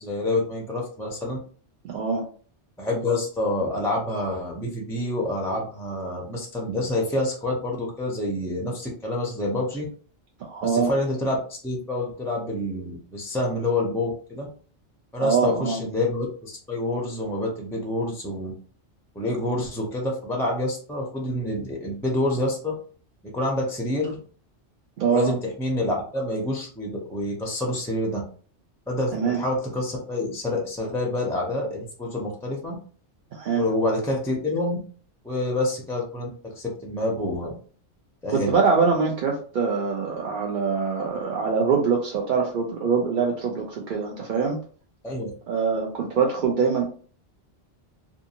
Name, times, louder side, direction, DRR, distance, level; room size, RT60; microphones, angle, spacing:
voice 1, 0.0-1.4 2.8-9.8 10.6-14.5 15.1-18.5 19.1-22.7 23.2-24.2 25.1-28.2 28.9-32.8 33.6-34.8 35.2-37.5 38.2-38.5 45.0-45.3, left 1 dB, 5° left, -1 dB, 0.3 m, -27 dB
voice 2, 1.8-2.3 10.4-10.9 15.2-15.8 25.0-25.3 29.1-29.4 33.3-33.7 38.3-44.6 45.5-46.9, right 5 dB, 60° right, -1 dB, 0.6 m, -24 dB
2.6 x 2.4 x 2.7 m, 0.42 s
omnidirectional pair, 1.2 m